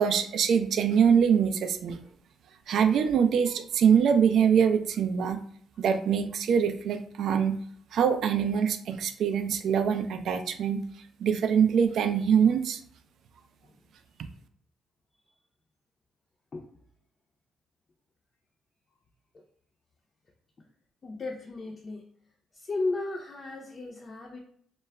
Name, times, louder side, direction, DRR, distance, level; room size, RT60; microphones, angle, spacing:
voice 1, 0.0-2.0 2.7-5.4 5.8-7.6 7.9-10.9 11.2-12.8, right 7 dB, 70° right, 8 dB, 0.3 m, -24 dB
voice 2, 21.0-22.0 22.5-24.4, left 3 dB, 40° left, 0 dB, 0.4 m, -35 dB
2.2 x 2.0 x 3.4 m, 0.62 s
cardioid pair, 90°, 0 cm